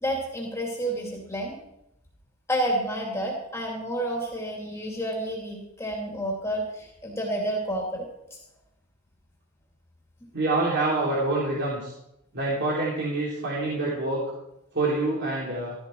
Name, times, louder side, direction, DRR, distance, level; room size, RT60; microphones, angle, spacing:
voice 1, 0.0-1.5 2.5-8.4, right 1 dB, 15° left, -1 dB, 2.5 m, -30 dB
voice 2, 10.3-11.9 12.3-14.2 14.7-15.7, right 2 dB, 55° right, -5 dB, 3.2 m, -26 dB
15.0 x 13.0 x 4.6 m, 0.84 s
head